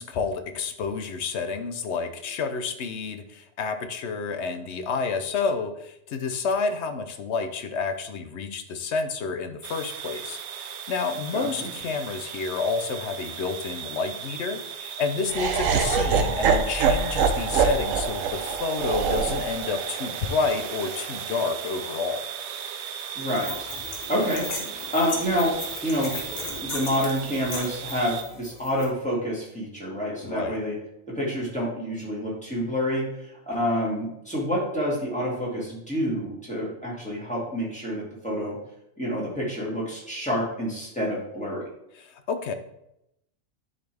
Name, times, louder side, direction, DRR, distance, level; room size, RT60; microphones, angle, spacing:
voice 1, 0.0-22.3 30.2-30.6 41.9-42.5, left 5 dB, 65° left, 8 dB, 0.9 m, -30 dB
sound 1, 9.6-28.2, right 8 dB, 70° right, 0.8 m, -37 dB
voice 2, 11.3-11.7 23.2-23.7 24.1-25.6 25.8-26.2 26.5-30.8 31.1-38.6 39.0-41.7, equal, 5° left, -6 dB, 2.3 m, -28 dB
Laughter, 15.3-21.4, right 5 dB, 90° right, 1.1 m, -25 dB
sound 2, 23.3-28.8, left 2 dB, 50° left, 1.5 m, -36 dB
9.8 x 4.1 x 3.4 m, 0.82 s
omnidirectional pair, 1.3 m